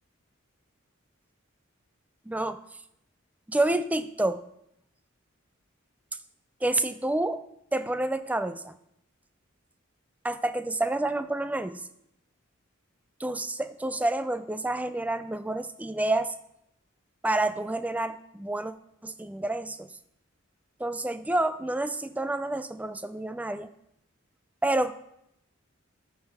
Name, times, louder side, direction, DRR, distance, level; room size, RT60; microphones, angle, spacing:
voice 1, 2.3-2.6 3.5-4.4 6.6-7.4 7.7-8.8 10.2-11.8 13.2-16.3 17.2-18.7 19.0-19.9 20.8-23.7 24.6-24.9, right 2 dB, 5° right, 11 dB, 0.3 m, -28 dB
13.5 x 5.4 x 3.5 m, 0.79 s
head